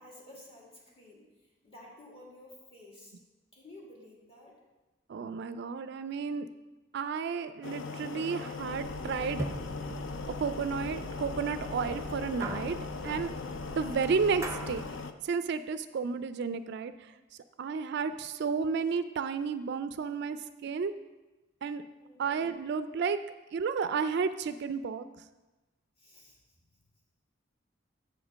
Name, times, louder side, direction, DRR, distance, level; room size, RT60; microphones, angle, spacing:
voice 1, 0.0-3.1 3.5-4.6 22.0-22.3 26.0-26.6, left 1 dB, 30° left, -3 dB, 2.1 m, -53 dB
voice 2, 5.1-6.5 6.9-9.5 10.3-12.8 13.0-13.3 13.8-14.8 15.2-17.1 17.6-20.9 21.6-21.8 22.2-23.2 23.5-25.1, right 5 dB, 60° right, 12 dB, 0.3 m, -32 dB
sound 1, 7.6-15.1, left 4 dB, 75° left, 0.5 m, -39 dB
sound 2, 8.5-15.0, right 1 dB, 15° right, 0.6 m, -41 dB
7.5 x 5.1 x 6.2 m, 1.1 s
head